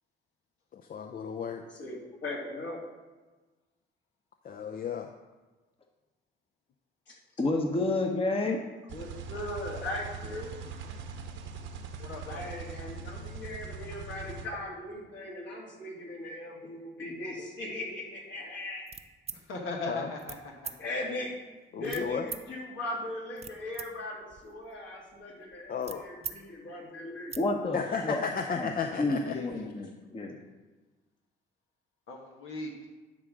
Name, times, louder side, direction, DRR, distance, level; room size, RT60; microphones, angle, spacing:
voice 1, 0.7-1.7 4.4-5.1 19.9-20.1 21.7-22.3 25.7-26.1 27.7-29.4 29.6-29.9, left 6 dB, 50° left, 5 dB, 0.6 m, -34 dB
voice 2, 1.8-2.8 7.1-7.2 8.9-10.5 12.3-18.8 20.8-21.3 21.7-27.3, left 1 dB, 65° left, -4 dB, 2.9 m, -39 dB
voice 3, 7.4-8.6 27.4-27.8 28.0-28.3 28.6-28.7 29.0-30.4, left 2 dB, 30° left, 2 dB, 1.0 m, -29 dB
sound 1, 8.9-14.5, right 4 dB, 75° right, 1.0 m, -41 dB
voice 4, 12.0-12.5 19.3-20.2 29.2-29.5 32.1-32.7, left 2 dB, 85° left, 0 dB, 1.3 m, -38 dB
sound 2, 18.9-19.4 20.2-20.4 20.6-20.8 21.9-22.4 23.1-23.9 24.2-26.4 26.7-26.8 27.1-27.4, right 6 dB, 30° right, 0.6 m, -42 dB
11.0 x 3.8 x 6.2 m, 1.2 s
cardioid pair, 90°, 20 cm